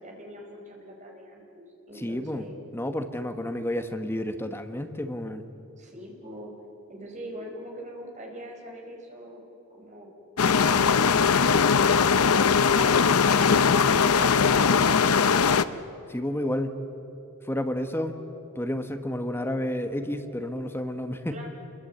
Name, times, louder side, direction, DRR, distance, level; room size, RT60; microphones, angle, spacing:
voice 1, 0.0-2.6 5.8-6.5 6.9-9.4 9.7-10.1 21.3-21.5, equal, 35° right, 0 dB, 4.6 m, -43 dB
voice 2, 2.0-2.5 2.7-5.4 16.1-16.8 17.4-18.2 18.5-21.4, left 1 dB, 10° left, 7 dB, 1.2 m, -31 dB
sound 1, 10.4-15.6, left 6 dB, 75° left, 0.7 m, -20 dB
27.0 x 22.0 x 8.1 m, 2.9 s
head